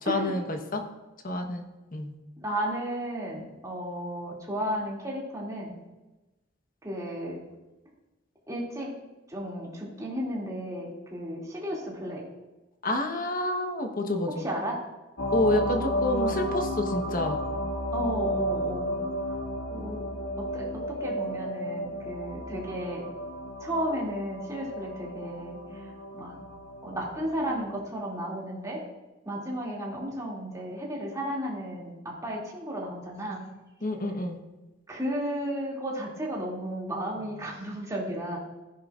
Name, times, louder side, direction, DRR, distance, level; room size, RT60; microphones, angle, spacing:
voice 1, 0.0-0.8 1.2-1.6 1.9-2.1 12.8-14.4 15.3-17.4 33.8-34.4, left 1 dB, 45° left, 5 dB, 1.2 m, -28 dB
voice 2, 2.4-5.7 6.8-7.4 8.5-8.9 9.3-12.2 14.4-14.8 16.2-16.4 17.9-19.0 19.7-20.0 20.4-23.0 23.6-25.6 26.1-26.3 26.8-28.8 29.3-33.5 34.9-38.4, equal, 15° right, -4 dB, 2.6 m, -33 dB
sound 1, 15.2-27.7, equal, 70° left, 1.5 m, -32 dB
14.0 x 10.5 x 2.5 m, 1.1 s
head